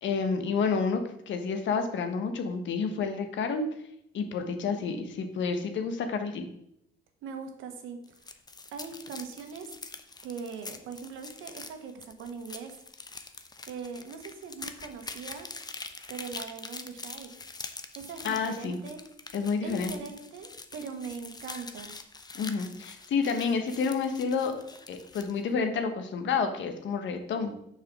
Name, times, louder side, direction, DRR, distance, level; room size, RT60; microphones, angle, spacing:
voice 1, 0.0-3.7 4.1-6.5 18.2-18.8 19.3-19.9 22.3-24.5 24.9-27.6, left 5 dB, 70° left, 6 dB, 1.2 m, -29 dB
voice 2, 7.2-8.0 8.7-9.7 10.2-12.8 13.7-15.5 16.1-17.3 17.9-19.0 19.6-21.9, right 5 dB, 90° right, 6 dB, 1.2 m, -41 dB
sound 1, 8.0-25.4, left 3 dB, 20° left, 0.7 m, -44 dB
6.7 x 4.8 x 6.1 m, 0.76 s
cardioid pair, 90°, 20 cm